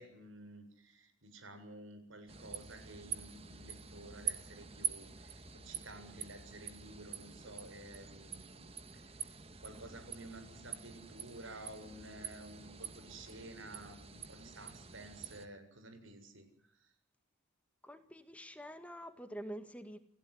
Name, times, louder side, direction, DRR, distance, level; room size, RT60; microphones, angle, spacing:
voice 1, 0.0-16.9, right 1 dB, 90° right, 8 dB, 7.5 m, -52 dB
sound 1, 2.3-15.5, right 8 dB, 30° right, 1.9 m, -46 dB
voice 2, 17.8-20.0, equal, 5° left, 9 dB, 1.9 m, -47 dB
29.5 x 16.0 x 9.8 m, 0.70 s
head